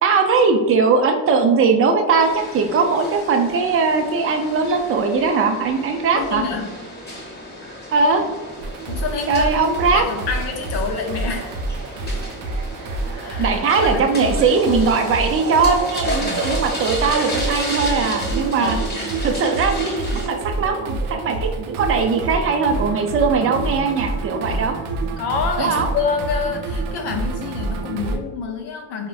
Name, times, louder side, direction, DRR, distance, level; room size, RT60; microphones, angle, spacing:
voice 1, 0.0-6.4 7.9-8.2 9.3-10.0 13.4-18.8 19.2-24.7 25.6-25.9, right 4 dB, 30° right, 5 dB, 0.4 m, -19 dB
sound 1, 2.2-20.3, left 1 dB, 20° left, 1.0 m, -33 dB
voice 2, 6.2-6.8 8.9-9.5 9.9-11.5 13.2-13.6 13.8-14.5 16.2-16.5 18.6-19.1 25.2-29.1, left 5 dB, 65° left, 3 dB, 0.5 m, -27 dB
sound 2, 8.6-28.2, right 3 dB, 85° right, 0.5 m, -27 dB
3.4 x 2.1 x 2.4 m, 1.3 s
cardioid pair, 90°, 46 cm